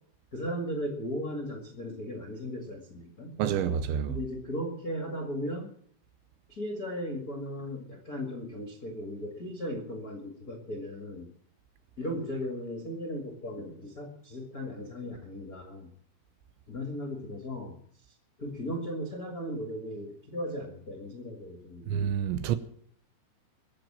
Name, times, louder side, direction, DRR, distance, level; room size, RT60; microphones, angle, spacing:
voice 1, 0.3-3.4 4.0-5.7 6.5-11.3 12.0-15.9 16.7-17.7 18.4-21.9, equal, 55° left, 1.0 m, -36 dB
voice 2, 3.4-4.2 21.9-22.6, right 8 dB, 80° right, 3.0 m, -28 dB
22.5 x 7.7 x 7.5 m
omnidirectional pair, 5.7 m